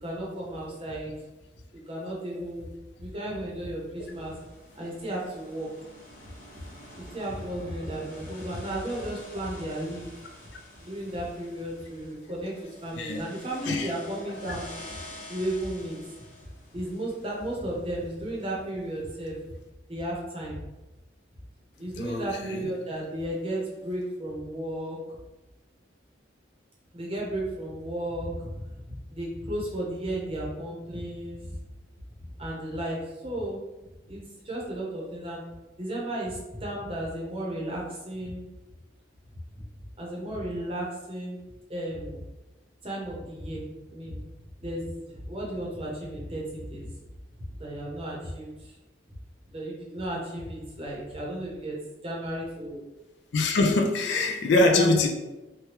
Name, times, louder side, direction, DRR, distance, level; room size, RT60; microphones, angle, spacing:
voice 1, 0.0-1.1 1.9-2.7 3.0-4.3 4.8-5.7 6.9-10.1 10.8-12.5 12.8-14.7 15.3-16.0 16.7-19.4 19.9-20.6 21.8-25.0 26.9-31.5 32.4-33.6 34.0-35.4 35.8-38.4 39.5-39.6 40.0-41.4 41.7-42.2 42.8-44.2 44.6-46.9 47.6-48.7 49.5-51.7 52.0-52.8 54.6-55.0, right 1 dB, 30° right, -3 dB, 0.7 m, -34 dB
sound 1, 4.0-18.1, left 1 dB, 40° left, 0.9 m, -47 dB
voice 2, 22.0-22.7 53.3-55.1, left 2 dB, 65° left, 4 dB, 0.4 m, -24 dB
3.2 x 2.2 x 2.9 m, 1.1 s
head